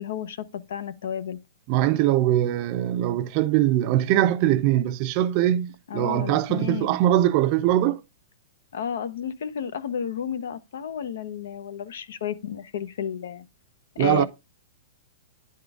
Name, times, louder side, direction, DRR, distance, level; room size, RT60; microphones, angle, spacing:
voice 1, 0.0-1.4 5.9-7.0 8.7-13.4 14.0-14.3, left 8 dB, 75° left, 0.8 m, -32 dB
voice 2, 1.7-8.0 14.0-14.3, right 13 dB, 35° right, 0.5 m, -22 dB
10.0 x 3.8 x 3.5 m
hypercardioid pair, 155°, 0 cm